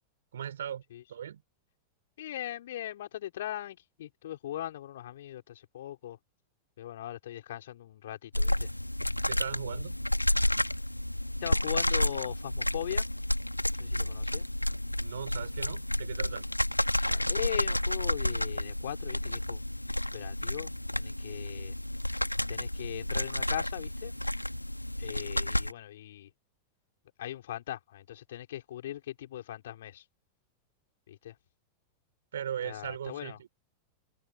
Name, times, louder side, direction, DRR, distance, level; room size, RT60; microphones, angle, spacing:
voice 1, 0.3-0.8 1.1-1.4 9.3-10.0 15.0-16.5 32.3-33.5, right 9 dB, 65° right, 4.4 m, -38 dB
voice 2, 2.2-6.2 6.8-8.7 11.4-13.1 13.8-14.5 17.1-19.6 20.1-21.7 22.5-24.1 25.0-26.3 27.2-30.0 31.1-31.3 32.6-33.4, left 12 dB, 60° left, 5.9 m, -39 dB
sound 1, 8.3-25.7, left 1 dB, 85° left, 2.3 m, -31 dB
open air
figure-of-eight pair, 90°, 0 cm